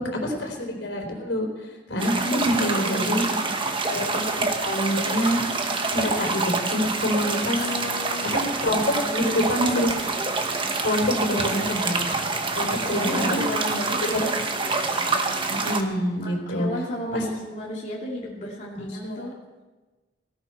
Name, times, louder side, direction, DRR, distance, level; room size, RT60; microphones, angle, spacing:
voice 1, 0.0-1.5 1.9-3.2 3.9-5.4 5.9-7.6 8.3-10.0 10.8-12.0 12.6-13.2 14.1-14.3 14.6-15.0 15.5-16.7 17.1-17.3 18.8-19.3, equal, 75° left, 1 dB, 3.8 m, -26 dB
sound 1, 2.0-15.8, right 3 dB, 30° right, 1.3 m, -26 dB
voice 2, 2.2-3.6 7.4-8.5 9.0-9.3 11.1-11.8 12.9-14.4 16.2-19.3, left 1 dB, 40° left, -4 dB, 2.5 m, -33 dB
18.0 x 16.5 x 4.5 m, 1.2 s
head